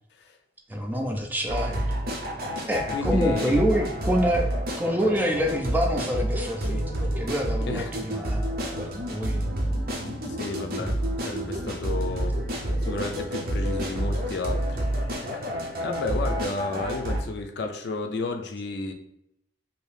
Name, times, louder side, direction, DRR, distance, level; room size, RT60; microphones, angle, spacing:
voice 1, 0.7-1.8 2.6-9.7 10.8-10.9, equal, 10° right, 2 dB, 0.3 m, -27 dB
sound 1, 1.5-17.2, equal, 55° right, 0.6 m, -29 dB
voice 2, 2.6-3.7 7.7-7.9 10.4-12.4 12.8-14.9 15.3-18.9, left 3 dB, 65° left, 4 dB, 0.4 m, -32 dB
2.7 x 2.6 x 3.3 m, 0.78 s
head